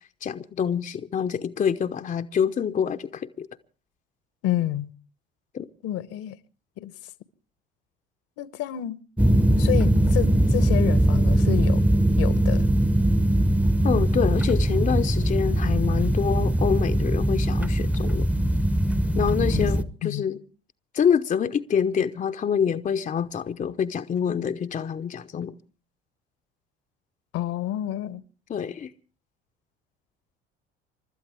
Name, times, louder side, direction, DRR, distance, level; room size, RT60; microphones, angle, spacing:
voice 1, 0.2-3.5 5.5-5.7 13.8-18.3 19.1-20.4 20.9-25.5 28.5-28.9, left 7 dB, 25° left, 0.8 m, -26 dB
voice 2, 4.4-4.9 5.8-6.4 6.8-6.9 8.4-9.0 9.6-11.8 12.2-12.7 19.5-19.7 20.0-20.3 27.3-28.2, left 13 dB, 50° left, 1.1 m, -29 dB
sound 1, 9.2-19.8, right 1 dB, 5° right, 0.9 m, -21 dB
29.5 x 13.0 x 3.5 m
figure-of-eight pair, 60°, 30 cm